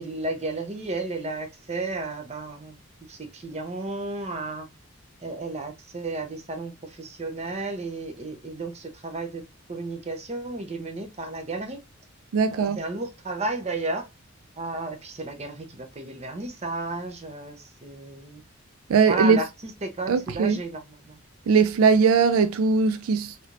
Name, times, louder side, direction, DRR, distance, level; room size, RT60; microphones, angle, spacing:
voice 1, 0.0-2.8 3.1-4.7 5.2-9.4 9.7-11.8 12.5-14.1 14.6-18.4 19.0-19.5 19.8-21.2, right 2 dB, 30° right, 0.6 m, -33 dB
voice 2, 12.3-12.8 18.9-19.4 20.1-20.6 21.5-23.5, right 5 dB, 75° right, 0.4 m, -20 dB
3.2 x 2.8 x 2.4 m
head